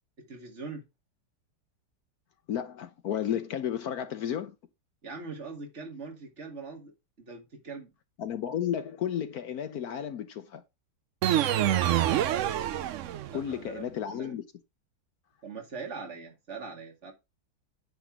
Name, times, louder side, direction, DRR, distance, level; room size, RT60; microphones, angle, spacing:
voice 1, 0.2-0.8 5.0-6.9 7.2-7.9 13.3-14.4 15.4-17.1, right 4 dB, 40° right, 2.6 m, -42 dB
voice 2, 2.5-4.5 8.2-10.6 13.3-14.4, left 9 dB, 65° left, 1.2 m, -33 dB
sound 1, 11.2-13.5, right 11 dB, 70° right, 0.7 m, -26 dB
9.6 x 3.7 x 6.1 m
omnidirectional pair, 1.8 m